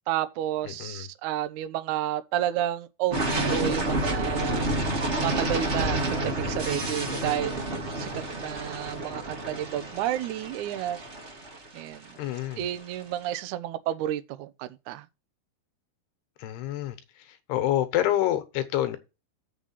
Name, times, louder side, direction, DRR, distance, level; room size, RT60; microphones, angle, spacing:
voice 1, 0.1-4.7 5.2-7.6 8.0-8.1 8.4-11.0 11.7-12.1 12.6-15.0, right 12 dB, 90° right, 1.7 m, -31 dB
voice 2, 0.6-1.1 12.2-12.7 16.4-17.0 17.3-19.0, left 13 dB, 90° left, 3.2 m, -27 dB
sound 1, 3.1-12.9, right 1 dB, 30° right, 1.3 m, -29 dB
7.5 x 6.8 x 5.6 m
omnidirectional pair, 4.6 m